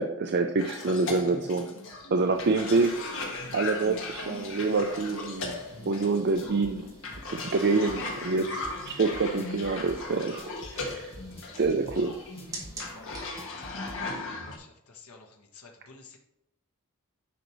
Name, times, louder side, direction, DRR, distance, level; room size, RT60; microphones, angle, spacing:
voice 1, 0.0-1.7 2.1-3.0 3.5-5.6 5.9-6.9 7.3-10.4 10.7-11.1 11.6-12.2, right 3 dB, 50° right, 5 dB, 0.6 m, -26 dB
Cough, 0.6-14.6, left 3 dB, 65° left, 1.7 m, -38 dB
sound 1, 2.3-13.3, right 2 dB, 15° right, 2.3 m, -50 dB
sound 2, 6.1-14.0, left 1 dB, 30° left, 1.3 m, -46 dB
voice 2, 12.7-16.2, left 4 dB, 85° left, 1 dB, 1.2 m, -51 dB
10.0 x 6.0 x 3.1 m, 0.84 s
head